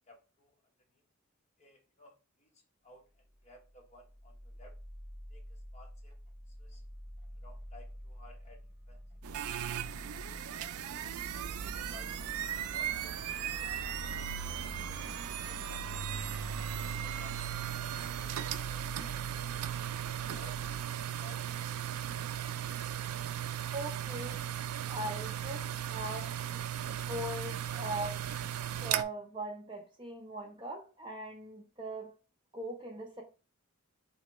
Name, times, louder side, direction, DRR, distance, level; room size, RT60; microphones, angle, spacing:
voice 1, 0.1-0.5 1.6-3.0 3.4-4.7 5.3-6.1 6.6-6.8 7.4-8.6 8.9-9.0 9.3-9.5 10.5-10.6 11.3-12.3 12.7-13.9 14.2-14.6 14.9-15.2 15.4-15.8 16.2-16.6 17.0-17.4 18.1-19.1 20.3-20.6 20.9-21.6 22.1-22.3, left 1 dB, 30° left, 0.9 m, -57 dB
sound 1, 3.4-20.8, equal, 40° right, 2.0 m, -47 dB
sound 2, 9.2-29.0, right 10 dB, 80° right, 0.3 m, -37 dB
voice 2, 23.7-24.4 24.9-26.3 26.9-28.2 28.8-32.2 32.5-33.2, right 1 dB, 20° right, 0.5 m, -40 dB
4.2 x 2.9 x 3.0 m
head